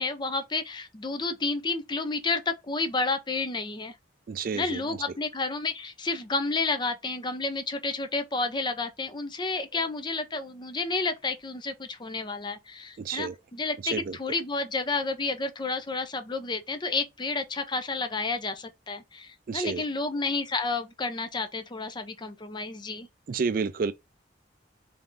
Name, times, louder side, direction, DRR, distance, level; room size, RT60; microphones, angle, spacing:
voice 1, 0.0-3.9 4.5-23.1, left 3 dB, 25° left, 0.5 m, -31 dB
voice 2, 4.3-5.0 13.0-13.4 13.8-14.2 19.5-19.8 23.3-23.9, right 5 dB, 50° right, 0.4 m, -30 dB
3.7 x 3.4 x 2.6 m
head